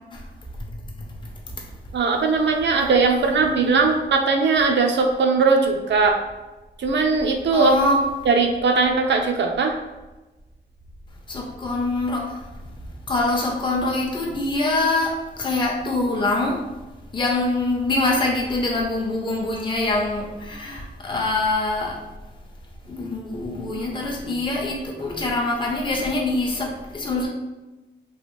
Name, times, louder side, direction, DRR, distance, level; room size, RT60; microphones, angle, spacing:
voice 1, 1.9-6.2 6.8-7.7 8.3-9.7, right 4 dB, 75° right, 3 dB, 0.5 m, -19 dB
voice 2, 3.1-3.9 7.5-8.0 11.3-12.4 13.1-16.6 17.1-22.0 22.9-27.3, left 2 dB, 25° left, -1 dB, 0.6 m, -24 dB
3.1 x 2.4 x 3.1 m, 1.1 s
wide cardioid pair, 110°, 19 cm